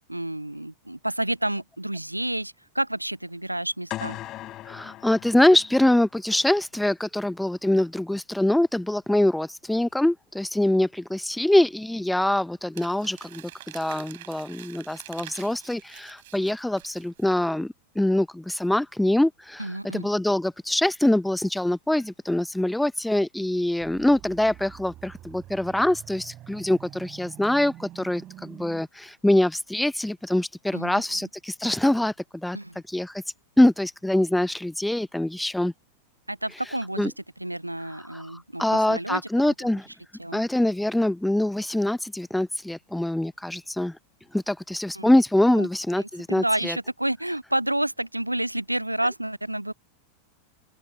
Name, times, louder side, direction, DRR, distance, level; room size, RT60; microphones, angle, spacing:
voice 1, 0.1-4.2 19.6-20.1 30.7-31.2 32.5-32.8 36.3-37.1 37.4-39.5 40.2-40.4 44.9-45.1 45.6-45.7 46.0-49.7, right 1 dB, 90° right, 0.5 m, -30 dB
sound 1, 3.9-6.0, left 15 dB, 35° left, 4.2 m, -38 dB
voice 2, 4.7-32.6 32.9-33.2 33.6-35.7 37.0-37.1 37.9-38.3 38.6-39.9 40.3-44.0 44.3-46.8, left 1 dB, 5° left, 1.2 m, -24 dB
Crumpling crinkling, 12.7-17.3, right 17 dB, 55° right, 6.0 m, -46 dB
sound 2, 23.8-28.8, right 13 dB, 35° right, 7.6 m, -46 dB
open air
figure-of-eight pair, 90°, 0 cm